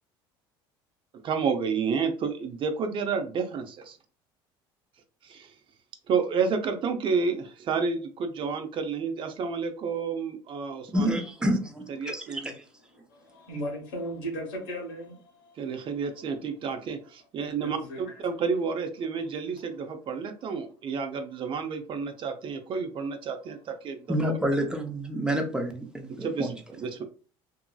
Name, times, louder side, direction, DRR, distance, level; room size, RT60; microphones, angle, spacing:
voice 1, 1.2-4.0 5.2-5.5 6.1-11.1 12.0-12.4 15.6-24.3 26.1-27.0, right 5 dB, 45° right, 0.6 m, -30 dB
voice 2, 10.9-12.6 24.1-26.5, equal, 5° right, 0.7 m, -28 dB
voice 3, 13.1-15.6 17.6-18.2, equal, 90° left, 1.2 m, -37 dB
2.8 x 2.6 x 2.3 m
supercardioid pair, 95°, 12 cm